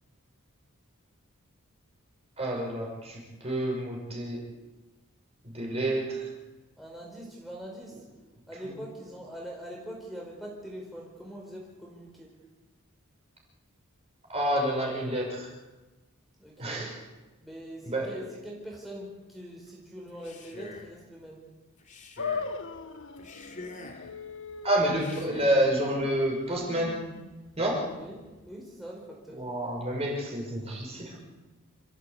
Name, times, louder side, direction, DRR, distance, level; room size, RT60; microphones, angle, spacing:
voice 1, 2.4-4.4 5.4-6.3 8.6-8.8 14.3-15.5 16.6-17.0 17.8-18.2 24.6-27.1 27.6-27.9 29.3-31.2, right 1 dB, 30° right, 0 dB, 6.1 m, -29 dB
voice 2, 6.8-8.0 8.5-12.3 16.4-16.9 17.4-21.4 28.0-28.2 28.5-29.4, equal, ahead, -3 dB, 4.7 m, -42 dB
Male speech man speaking, 20.1-21.0 21.8-22.6 23.2-24.1 24.9-25.7, left 2 dB, 35° left, 3.1 m, -46 dB
sound 1, 22.2-28.6, left 4 dB, 60° left, 1.4 m, -40 dB
28.0 x 15.0 x 8.5 m, 1.2 s
head